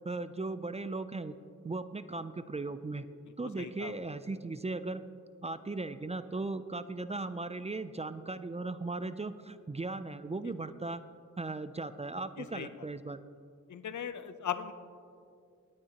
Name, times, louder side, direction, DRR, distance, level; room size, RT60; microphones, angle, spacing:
voice 1, 0.0-1.3 1.6-3.0 3.4-5.0 5.4-11.0 11.4-13.3, right 3 dB, 20° right, 13 dB, 0.4 m, -37 dB
voice 2, 3.6-3.9 12.4-12.7 13.7-14.7, left 8 dB, 70° left, 11 dB, 0.7 m, -38 dB
18.0 x 9.6 x 2.9 m, 2.3 s
wide cardioid pair, 65°, 30 cm